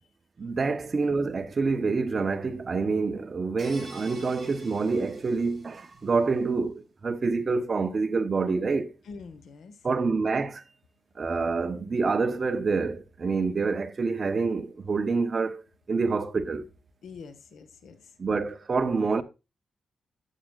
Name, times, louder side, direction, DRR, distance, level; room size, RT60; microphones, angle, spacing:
voice 1, 0.4-8.9 9.8-10.6 11.2-15.6 15.9-16.7 18.2-19.2, right 4 dB, 35° right, 0.8 m, -27 dB
sound 1, 3.6-6.1, right 1 dB, 10° right, 5.5 m, -48 dB
voice 2, 9.0-9.8 17.0-18.1, left 5 dB, 80° left, 1.4 m, -45 dB
13.0 x 7.3 x 2.4 m
wide cardioid pair, 130°, 0 cm